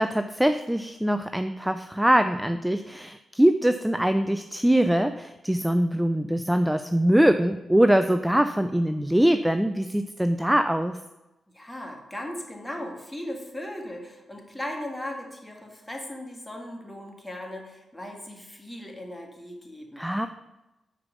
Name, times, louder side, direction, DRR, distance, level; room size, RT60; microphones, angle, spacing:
voice 1, 0.0-11.0 20.0-20.3, right 1 dB, 5° right, 9 dB, 0.4 m, -23 dB
voice 2, 11.5-20.1, left 1 dB, 10° left, 1 dB, 2.0 m, -37 dB
5.8 x 4.8 x 6.1 m, 1.0 s
supercardioid pair, 45°, 0 cm